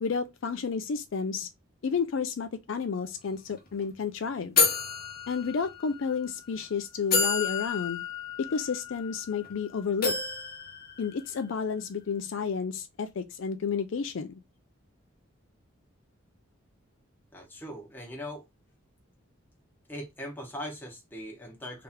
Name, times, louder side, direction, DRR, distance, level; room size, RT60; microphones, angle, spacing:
voice 1, 0.0-1.5 1.8-4.6 5.3-8.0 8.4-10.2 11.0-14.4, left 5 dB, 65° left, 0.4 m, -31 dB
sound 1, 3.2-3.3 3.6-3.8 4.6-6.0 6.6-6.7 7.1-9.5 10.0-11.7, left 4 dB, 45° left, 1.0 m, -30 dB
voice 2, 17.3-18.4 19.9-21.8, equal, 10° left, 0.9 m, -40 dB
3.3 x 2.8 x 3.5 m
head